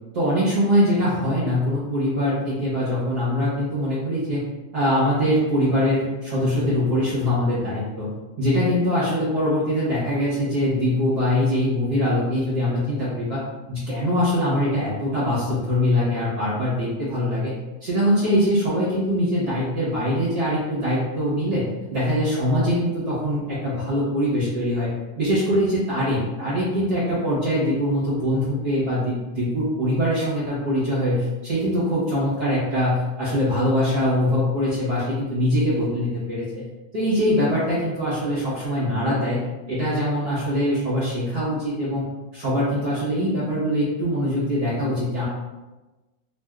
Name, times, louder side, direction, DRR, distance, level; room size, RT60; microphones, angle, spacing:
voice 1, 0.1-4.4 4.7-8.1 8.4-13.4 13.7-17.6 17.8-24.9 25.2-36.6 36.9-39.4 39.7-42.0 42.3-45.3, equal, 60° right, -11 dB, 1.5 m, -23 dB
3.4 x 2.5 x 2.2 m, 1.1 s
omnidirectional pair, 2.0 m